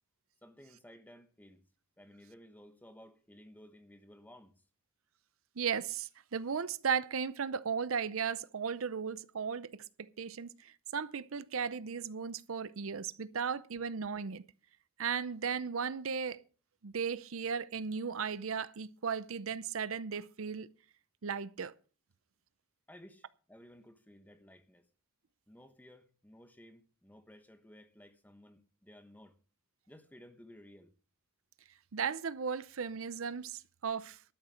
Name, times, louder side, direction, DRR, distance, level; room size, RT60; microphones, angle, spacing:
voice 1, 0.4-1.7 2.0-4.6 22.9-24.9 25.5-29.4 29.9-31.0, equal, 10° left, 1.1 m, -56 dB
voice 2, 5.6-14.4 15.0-16.4 16.8-20.7 21.2-21.7 31.9-34.2, right 6 dB, 70° right, 0.6 m, -36 dB
12.5 x 7.4 x 6.3 m
head